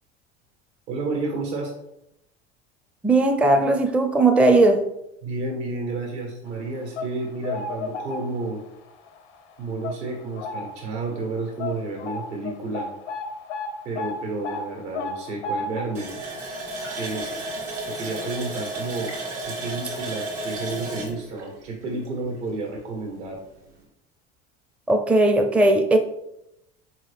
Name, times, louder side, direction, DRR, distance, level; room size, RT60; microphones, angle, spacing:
voice 1, 0.9-1.7 5.2-8.6 9.6-12.9 13.8-16.1 16.9-17.3 17.9-19.1 19.4-23.4, right 3 dB, 70° right, 1.5 m, -31 dB
voice 2, 3.0-4.9 24.9-26.0, right 2 dB, 5° right, 0.4 m, -18 dB
sound 1, 6.7-8.7 9.1-9.3 9.8-10.9 11.2-11.3 11.6-18.6 18.9-19.1 20.0-20.1 20.4-20.5, left 3 dB, 80° left, 0.6 m, -34 dB
Water tap faucet, 15.9-22.4 22.8-22.9 23.3-23.5, right 2 dB, 85° right, 1.5 m, -33 dB
4.1 x 3.7 x 3.5 m
hypercardioid pair, 75°, 35 cm